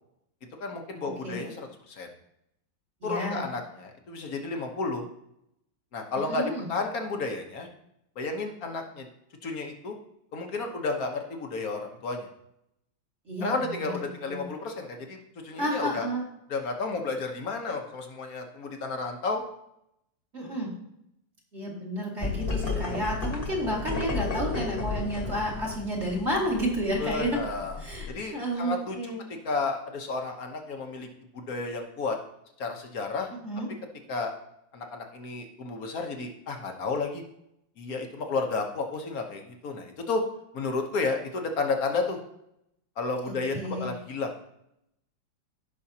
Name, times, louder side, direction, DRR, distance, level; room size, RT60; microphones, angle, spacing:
voice 1, 0.6-2.1 3.0-5.0 5.9-7.7 8.2-9.1 9.4-9.9 10.3-12.3 13.4-15.2 15.4-16.1 16.5-19.4 27.0-27.8 28.1-29.0 29.4-31.1 31.3-32.2 32.6-33.3 34.1-34.3 34.7-37.2 37.8-40.2 40.5-42.2 43.0-44.3, left 3 dB, 55° left, 4 dB, 1.3 m, -32 dB
voice 2, 3.0-3.4 6.3-6.7 13.3-13.9 14.3-14.5 15.6-16.2 20.3-20.7 21.5-27.4 27.8-28.1 28.3-29.2 33.4-33.7 43.5-43.9, equal, 35° right, -4 dB, 2.4 m, -31 dB
sound 1, 22.2-28.1, left 3 dB, 30° left, 1.5 m, -33 dB
16.5 x 5.6 x 2.8 m, 0.79 s
omnidirectional pair, 2.1 m